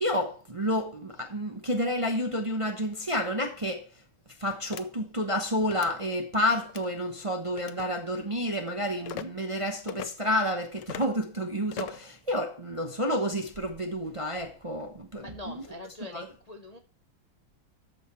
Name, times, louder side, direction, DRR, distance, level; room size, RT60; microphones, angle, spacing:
voice 1, 0.0-3.9 4.4-15.6 16.1-16.3, equal, 25° right, 0.7 m, -30 dB
sound 1, 4.7-4.8 5.6-5.9 6.6-6.9 7.6-7.9 9.0-9.3 9.9-10.1 10.8-11.1 11.7-12.1, left 11 dB, 80° left, 1.3 m, -39 dB
voice 2, 15.2-16.8, left 2 dB, 35° left, 0.6 m, -43 dB
13.0 x 5.7 x 4.3 m
omnidirectional pair, 1.9 m